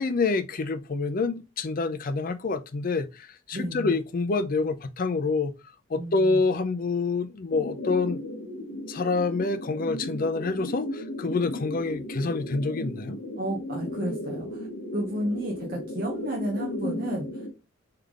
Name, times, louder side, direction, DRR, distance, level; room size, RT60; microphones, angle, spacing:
voice 1, 0.0-5.5 5.9-8.2 8.9-13.2, left 3 dB, 40° left, 0.4 m, -27 dB
voice 2, 3.5-3.9 6.0-6.4 13.4-14.7 14.9-17.4, equal, 45° right, 0.8 m, -32 dB
sound 1, 7.5-17.5, left 1 dB, 65° left, 0.9 m, -35 dB
3.8 x 3.3 x 3.5 m
head